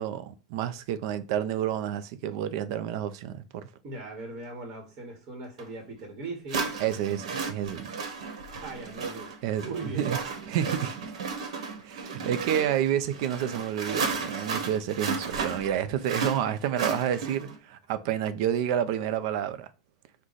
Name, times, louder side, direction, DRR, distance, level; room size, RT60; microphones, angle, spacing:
voice 1, 0.0-3.7 6.8-7.9 9.4-10.2 10.5-11.1 11.8-19.7, right 10 dB, 50° right, 0.4 m, -29 dB
voice 2, 3.8-6.7 8.5-9.3 9.6-10.1, right 2 dB, 30° right, 1.2 m, -39 dB
sound 1, 5.6-5.7 6.5-17.6, right 4 dB, 85° right, 1.0 m, -34 dB
4.7 x 2.2 x 3.9 m
supercardioid pair, 150°, 3 cm